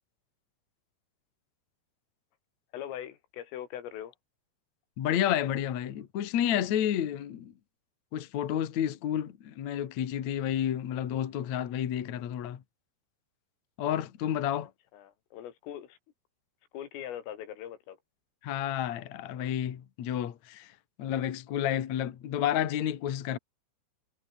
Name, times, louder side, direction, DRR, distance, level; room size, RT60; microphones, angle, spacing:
voice 1, 2.7-4.1 14.9-16.0 16.7-18.0, left 11 dB, 75° left, 5.0 m, -41 dB
voice 2, 5.0-7.5 8.1-12.6 13.8-14.7 18.4-23.4, left 10 dB, 60° left, 1.9 m, -30 dB
omnidirectional pair, 6.0 m